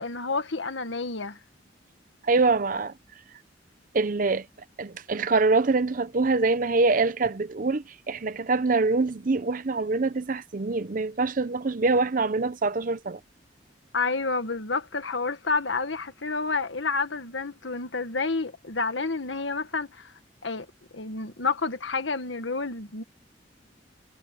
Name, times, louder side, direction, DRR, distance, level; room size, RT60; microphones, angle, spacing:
voice 1, 0.0-1.4 13.9-20.1 20.4-20.7 20.9-23.0, left 4 dB, 85° left, 1.7 m, -29 dB
voice 2, 2.2-2.9 3.9-4.5 4.8-13.2, right 3 dB, 45° right, 0.7 m, -24 dB
head